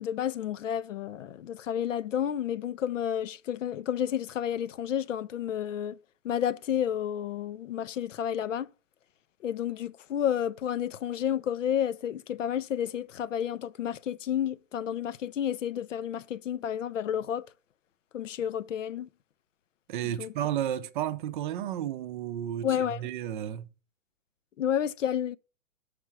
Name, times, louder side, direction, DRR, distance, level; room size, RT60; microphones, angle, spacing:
voice 1, 0.0-6.0 6.2-8.7 9.4-17.4 18.1-19.1 20.2-20.3 22.6-23.1 24.6-25.4, left 9 dB, 65° left, 0.6 m, -31 dB
voice 2, 19.9-23.7, right 11 dB, 40° right, 0.6 m, -32 dB
6.3 x 4.9 x 5.7 m
figure-of-eight pair, 110°, 40 cm